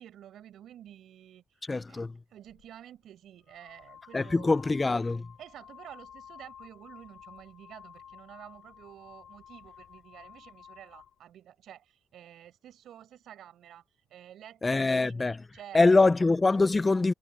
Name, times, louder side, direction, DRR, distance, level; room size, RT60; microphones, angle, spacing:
voice 1, 0.0-4.6 5.4-16.1, right 11 dB, 75° right, 5.3 m, -50 dB
voice 2, 1.7-2.1 4.1-5.3 14.6-15.4 15.7-17.1, left 3 dB, 25° left, 0.5 m, -23 dB
sound 1, 2.5-2.7 3.5-11.2, left 8 dB, 60° left, 3.0 m, -52 dB
cardioid pair, 90°, 0 cm